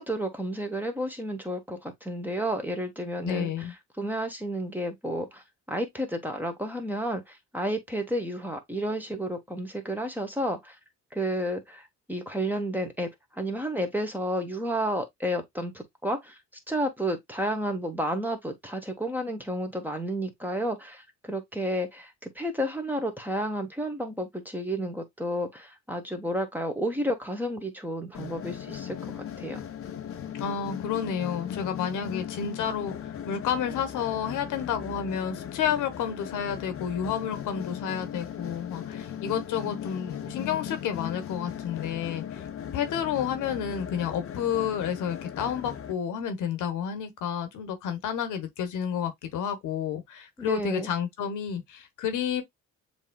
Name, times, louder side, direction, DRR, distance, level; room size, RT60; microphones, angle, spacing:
voice 1, 0.0-3.7 4.0-10.8 11.1-16.4 16.7-29.6 50.4-50.9, equal, 5° right, 1.2 m, -31 dB
voice 2, 3.2-3.7 30.3-42.4 42.7-52.4, left 8 dB, 85° left, 1.1 m, -30 dB
sound 1, 28.1-45.9, left 9 dB, 45° left, 0.8 m, -38 dB
7.1 x 3.0 x 2.2 m
cardioid pair, 90°, 30 cm